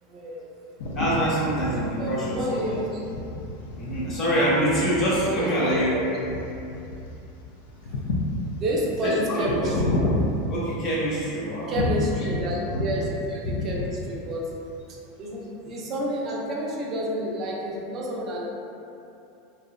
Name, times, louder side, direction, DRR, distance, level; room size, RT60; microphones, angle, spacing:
voice 1, 0.0-0.4 2.0-3.0 5.2-6.0 7.8-8.0 8.6-9.9 11.7-14.5 15.2-18.5, equal, 35° right, -3 dB, 0.4 m, -29 dB
sound 1, 0.8-11.2 11.7-13.1 13.3-14.2, left 2 dB, 80° left, 0.3 m, -30 dB
voice 2, 0.8-2.8 3.7-6.0 9.0-9.7 10.5-11.7 12.2-12.3, equal, 40° left, -8 dB, 0.9 m, -25 dB
2.6 x 2.0 x 2.3 m, 2.7 s
supercardioid pair, 125°, 0 cm